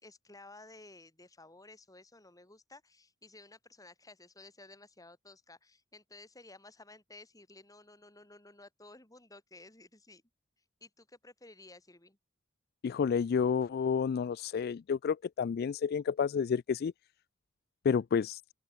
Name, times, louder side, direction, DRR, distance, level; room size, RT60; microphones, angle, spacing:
voice 1, 0.0-10.2 10.8-12.2, left 2 dB, 20° left, 4.4 m, -55 dB
voice 2, 12.8-16.9 17.8-18.4, left 6 dB, 50° left, 0.3 m, -30 dB
open air
head